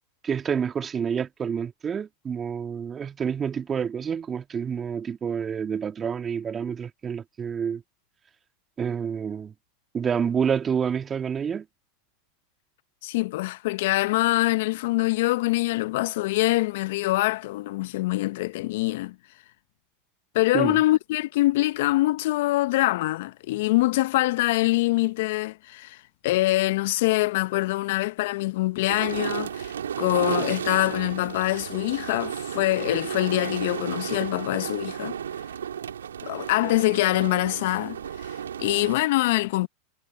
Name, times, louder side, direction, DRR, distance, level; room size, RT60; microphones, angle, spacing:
voice 1, 0.2-7.8 8.8-9.5 9.9-11.6 20.5-20.8, right 7 dB, 25° right, 2.8 m, -28 dB
voice 2, 13.0-19.1 20.3-26.0 26.2-29.7 30.0-35.2 36.2-39.7, left 18 dB, 65° left, 0.8 m, -24 dB
sound 1, 28.9-39.0, right 8 dB, 85° right, 3.6 m, -33 dB
hypercardioid pair, 95°, 0 cm